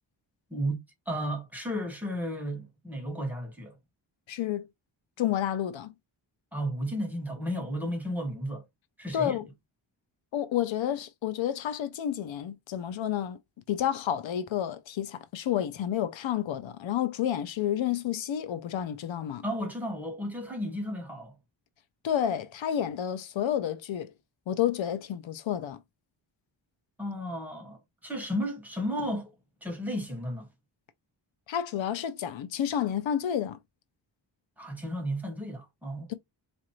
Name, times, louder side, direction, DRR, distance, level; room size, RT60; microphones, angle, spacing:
voice 1, 0.5-3.8 6.5-8.6 9.0-9.4 19.4-21.3 27.0-29.3 29.6-30.5 34.6-36.1, equal, 5° right, 1.4 m, -33 dB
voice 2, 4.3-4.7 5.2-5.9 9.1-9.5 10.3-13.4 13.7-19.4 22.0-24.1 24.5-25.8 31.5-33.6 36.1-36.2, left 10 dB, 80° left, 0.7 m, -30 dB
4.2 x 2.6 x 3.0 m
wide cardioid pair, 170°, 45 cm